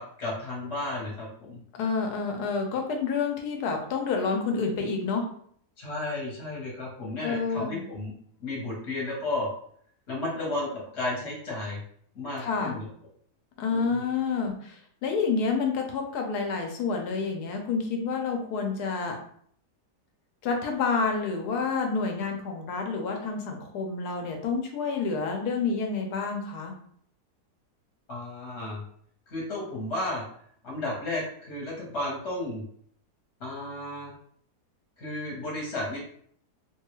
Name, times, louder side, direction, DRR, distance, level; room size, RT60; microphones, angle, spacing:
voice 1, 0.0-1.6 5.8-8.1 8.4-9.5 10.1-11.8 12.1-12.9 13.7-14.1 28.1-28.8 29.3-30.2 30.6-32.6 33.4-34.1 35.0-36.0, left 2 dB, 45° left, -4 dB, 1.1 m, -33 dB
voice 2, 1.7-5.3 7.2-7.8 12.4-12.8 13.6-19.2 20.4-26.7, left 4 dB, 75° left, 3 dB, 1.2 m, -29 dB
3.0 x 2.3 x 3.0 m, 0.62 s
omnidirectional pair, 1.7 m